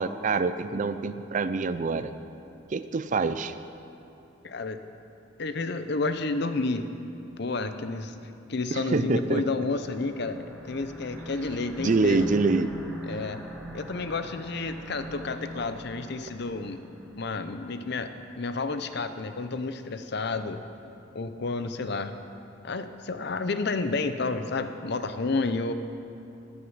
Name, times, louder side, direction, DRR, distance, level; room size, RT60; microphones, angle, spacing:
voice 1, 0.0-2.1 2.7-3.5 8.7-9.4 11.8-12.7, right 3 dB, 40° right, 12 dB, 0.4 m, -25 dB
voice 2, 4.4-4.8 5.4-6.9 7.4-8.2 8.5-12.3 13.0-13.4 13.7-16.8 17.2-20.6 21.1-22.2 22.6-25.7, left 3 dB, 55° left, 9 dB, 0.6 m, -30 dB
sound 1, 9.1-17.5, right 1 dB, ahead, 1.2 m, -43 dB
13.5 x 10.0 x 5.6 m, 2.8 s
head